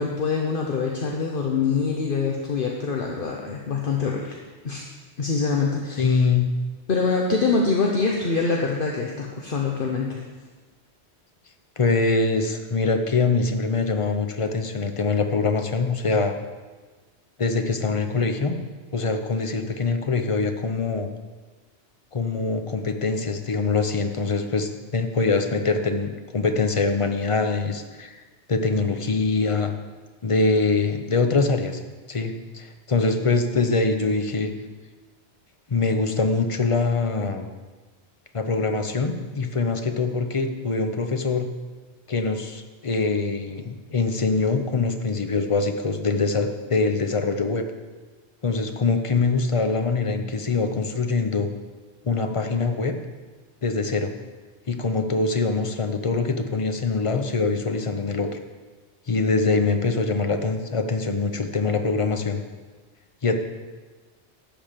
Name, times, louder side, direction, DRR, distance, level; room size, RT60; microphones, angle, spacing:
voice 1, 0.0-4.4 4.6-4.8 5.2-6.2 6.9-10.2, left 4 dB, 55° left, 0 dB, 1.1 m, -24 dB
voice 2, 6.0-6.4 11.8-16.3 17.4-18.6 18.9-21.1 22.1-28.2 28.5-29.7 30.2-31.8 32.1-34.5 35.7-37.5 38.3-41.5 42.1-47.6 48.4-51.5 52.0-52.9 53.6-54.1 54.7-58.4 59.1-62.4 63.2-63.4, left 4 dB, 30° left, 6 dB, 0.8 m, -23 dB
11.5 x 5.2 x 7.5 m, 1.3 s
omnidirectional pair, 1.1 m